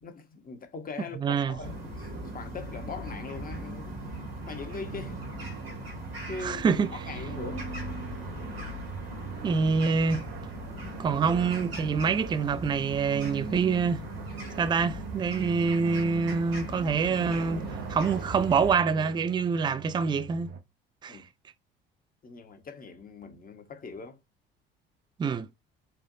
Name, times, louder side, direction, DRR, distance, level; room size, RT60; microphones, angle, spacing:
voice 1, 0.0-3.9 4.5-5.2 6.3-7.7 14.4-14.6 21.1-21.2 22.2-24.2, left 4 dB, 30° left, 1.1 m, -41 dB
voice 2, 1.2-1.6 6.4-6.9 9.4-10.2 11.0-14.0 14.6-17.6 17.9-20.5 21.0-21.2 25.2-25.5, right 5 dB, 15° right, 0.4 m, -26 dB
sound 1, 1.3-20.6, right 7 dB, 50° right, 0.7 m, -43 dB
sound 2, 1.6-18.7, equal, 80° right, 1.9 m, -39 dB
4.4 x 2.5 x 2.6 m
hypercardioid pair, 60°, 29 cm